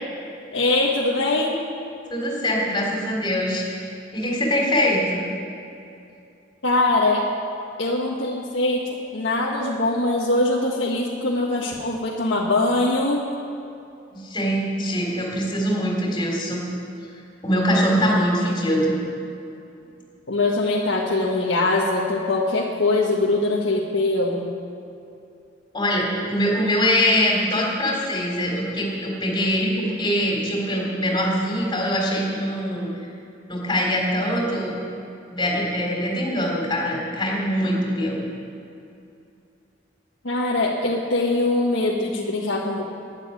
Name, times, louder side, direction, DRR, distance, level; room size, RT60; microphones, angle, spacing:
voice 1, 0.5-1.5 6.6-7.3 7.8-13.3 20.3-24.5 40.2-42.8, left 2 dB, 90° left, -4 dB, 1.5 m, -22 dB
voice 2, 2.1-5.2 14.1-16.6 17.4-19.0 25.7-32.9 33.5-34.8 35.3-38.2, equal, 25° left, -2 dB, 3.7 m, -23 dB
12.5 x 10.5 x 9.7 m, 2.7 s
head